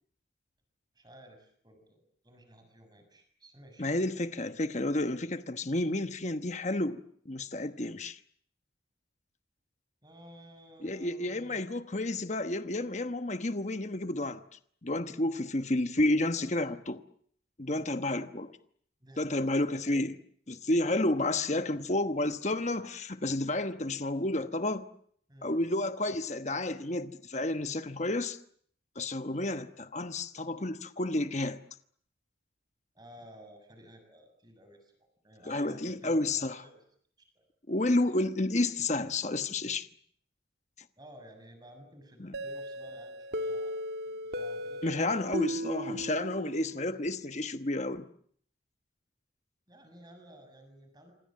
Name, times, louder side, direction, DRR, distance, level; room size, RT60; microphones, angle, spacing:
voice 1, 0.9-3.9 10.0-11.6 17.7-17.8 19.0-19.4 25.3-25.6 32.9-34.9 35.2-36.8 37.3-37.4 41.0-45.1 49.7-51.1, right 1 dB, 20° right, 7.0 m, -54 dB
voice 2, 3.8-8.2 10.8-14.4 14.8-17.0 17.6-18.5 19.2-20.2 20.5-24.9 25.4-28.4 28.9-31.6 35.5-36.6 37.7-39.9 42.2-42.3 44.8-48.1, left 2 dB, 35° left, 1.1 m, -31 dB
sound 1, 42.3-47.0, equal, 55° right, 1.9 m, -37 dB
27.5 x 26.0 x 7.7 m
head